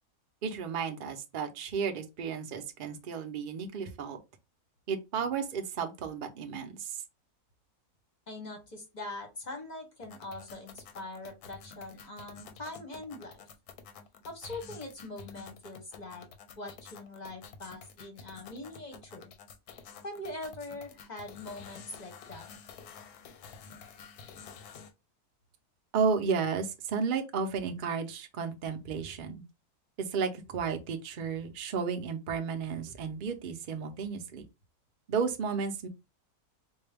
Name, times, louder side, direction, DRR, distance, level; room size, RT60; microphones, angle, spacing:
voice 1, 0.4-4.2 4.9-7.0 25.9-29.4 30.0-34.4 35.1-35.9, right 6 dB, 55° right, 0.6 m, -33 dB
voice 2, 8.3-13.4 14.3-16.3 16.6-19.3 20.0-22.5, left 2 dB, 35° left, 0.8 m, -43 dB
sound 1, 10.0-24.9, left 6 dB, 90° left, 1.2 m, -50 dB
4.4 x 2.2 x 3.3 m
omnidirectional pair, 1.6 m